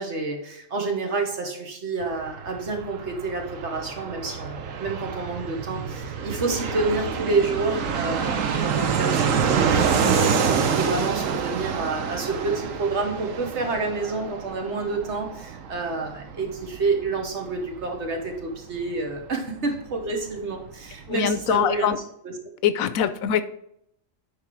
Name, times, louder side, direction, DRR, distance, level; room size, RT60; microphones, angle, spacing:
voice 1, 0.0-21.9 22.2-22.3, right 3 dB, 60° right, 2 dB, 1.5 m, -29 dB
Fixed-wing aircraft airplane, 2.0-20.4 20.6-20.7 20.9-21.7, right 6 dB, 75° right, 1.1 m, -27 dB
voice 2, 21.1-22.0 22.6-23.4, left 8 dB, 90° left, 12 dB, 1.0 m, -23 dB
9.8 x 3.6 x 4.6 m, 0.74 s
omnidirectional pair, 1.4 m